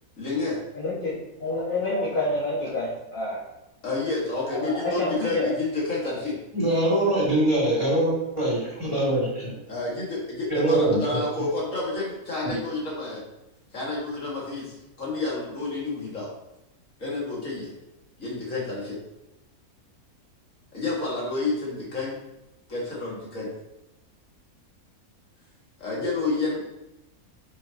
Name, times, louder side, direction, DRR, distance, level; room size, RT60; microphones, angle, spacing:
voice 1, 0.2-0.6 3.8-6.4 9.7-13.2 13.7-16.3 17.0-17.7 18.2-19.0 20.7-22.2 22.7-23.5 25.8-26.6, left 3 dB, 55° left, -5 dB, 2.6 m, -29 dB
voice 2, 0.7-1.1 1.4-3.4 4.6-5.5, left 2 dB, 35° left, -5 dB, 1.4 m, -28 dB
voice 3, 6.5-9.5 10.5-11.2 12.4-12.5, right 1 dB, 20° right, -7 dB, 3.0 m, -23 dB
8.6 x 6.6 x 3.0 m, 0.95 s
omnidirectional pair, 1.6 m